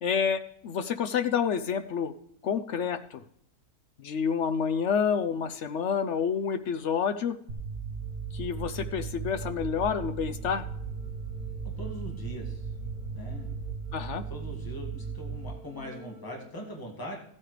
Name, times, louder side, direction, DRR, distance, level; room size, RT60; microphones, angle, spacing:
voice 1, 0.0-2.1 2.4-3.2 4.0-7.3 8.3-10.6 13.9-14.2, left 7 dB, 65° left, 11 dB, 0.8 m, -28 dB
sound 1, 7.5-16.5, right 5 dB, 75° right, 1.8 m, -37 dB
sound 2, 8.3-13.8, right 1 dB, 80° left, 2.6 m, -45 dB
voice 2, 11.8-12.7 13.2-13.5 14.2-17.2, equal, 15° left, -1 dB, 2.0 m, -41 dB
15.0 x 8.6 x 3.3 m, 0.70 s
omnidirectional pair, 1.6 m